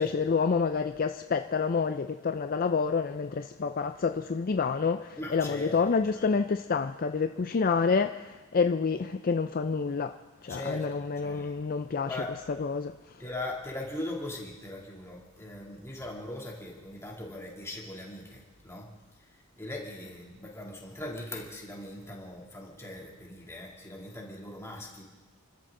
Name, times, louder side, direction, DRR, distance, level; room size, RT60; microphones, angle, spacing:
voice 1, 0.0-10.2 10.4-12.2 12.6-12.9, left 5 dB, 40° left, 0.4 m, -28 dB
voice 2, 5.2-6.3 10.4-11.6 12.1-12.4 13.2-18.9 19.2-19.3 19.6-25.0, left 1 dB, 10° left, 2.7 m, -40 dB
29.5 x 13.0 x 3.8 m
head